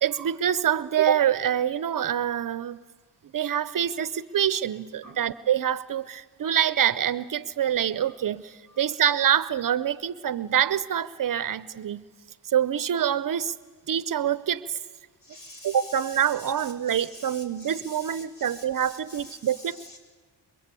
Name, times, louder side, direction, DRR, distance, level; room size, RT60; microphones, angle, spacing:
voice 1, 0.0-2.8 3.3-12.0 12.5-13.5 13.9-14.8 15.6-19.8, right 9 dB, 50° right, 16 dB, 0.7 m, -26 dB
voice 2, 15.2-15.8 16.9-20.0, left 1 dB, 50° left, 3 dB, 7.2 m, -46 dB
27.5 x 23.0 x 8.3 m, 1.4 s
cardioid pair, 95°, 43 cm